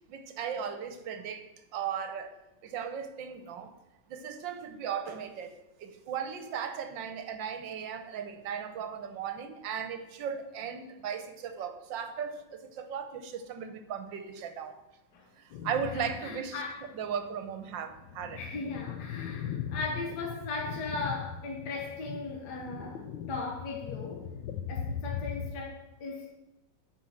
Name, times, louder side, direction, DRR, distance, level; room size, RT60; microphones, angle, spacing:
voice 1, 0.1-2.4 2.6-3.7 4.1-14.8 15.4-16.6 16.9-18.4, right 7 dB, 80° right, 9 dB, 1.6 m, -37 dB
sound 1, 15.5-16.4 16.8-16.9 17.6-25.5, left 8 dB, 80° left, 1.5 m, -39 dB
voice 2, 15.9-16.8 18.4-24.2 24.7-26.4, left 3 dB, 60° left, 0 dB, 1.9 m, -38 dB
8.9 x 5.0 x 7.2 m, 0.95 s
omnidirectional pair, 2.0 m